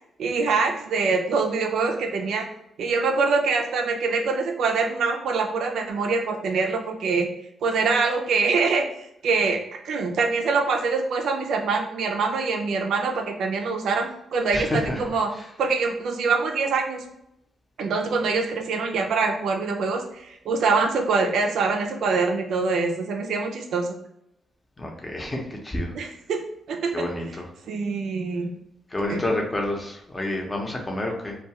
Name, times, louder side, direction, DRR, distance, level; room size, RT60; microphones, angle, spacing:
voice 1, 0.2-2.5 2.8-7.3 7.6-8.8 9.2-9.6 9.8-15.3 15.6-17.0 17.8-23.9 25.9-26.4 26.7-27.1 27.7-28.5 29.1-29.3, right 4 dB, 75° right, 3 dB, 0.4 m, -24 dB
voice 2, 14.5-15.0 24.8-25.9 26.9-27.3 28.9-31.4, left 1 dB, 20° left, 1 dB, 0.7 m, -28 dB
2.3 x 2.3 x 2.9 m, 0.79 s
cardioid pair, 85°, 0 cm